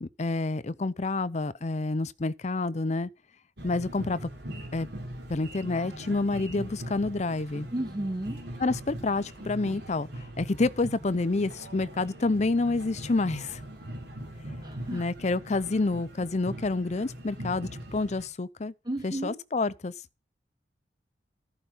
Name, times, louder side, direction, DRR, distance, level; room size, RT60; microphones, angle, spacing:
voice 1, 0.0-3.1 3.6-4.3 4.7-4.9 5.3-7.7 8.6-13.6 14.9-18.7 19.0-19.9, left 3 dB, 40° left, 0.6 m, -28 dB
sound 1, 3.6-18.3, right 1 dB, 70° right, 3.8 m, -41 dB
voice 2, 7.7-8.4 14.6-15.0 18.8-19.4, right 1 dB, 25° right, 2.3 m, -33 dB
14.5 x 5.2 x 7.2 m
head